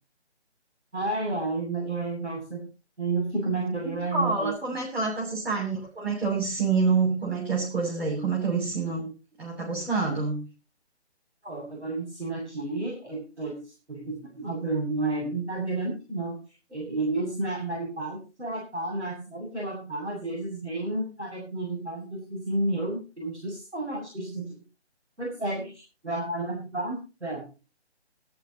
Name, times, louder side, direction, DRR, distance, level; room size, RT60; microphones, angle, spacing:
voice 1, 0.9-2.7 3.0-4.5 11.4-16.4 16.7-24.6 25.2-27.5, right 2 dB, 85° right, -2 dB, 7.8 m, -31 dB
voice 2, 4.1-9.1 9.4-10.5, right 4 dB, 65° right, -3 dB, 7.9 m, -27 dB
19.0 x 15.0 x 3.1 m, 0.33 s
figure-of-eight pair, 150°, 34 cm